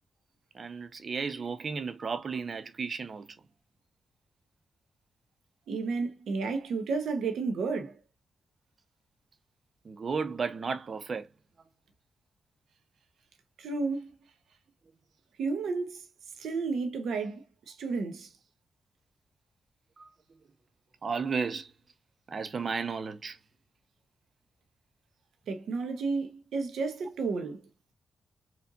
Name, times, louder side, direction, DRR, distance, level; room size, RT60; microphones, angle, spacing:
voice 1, 0.5-3.4 9.8-11.3 20.0-20.1 21.0-21.7 22.3-23.4, right 5 dB, 50° right, 0.7 m, -34 dB
voice 2, 5.7-8.0 13.6-14.1 15.4-16.1 16.4-18.3 25.5-27.6, right 4 dB, 85° right, 1.0 m, -32 dB
4.4 x 2.6 x 2.6 m
cardioid pair, 95°, 0 cm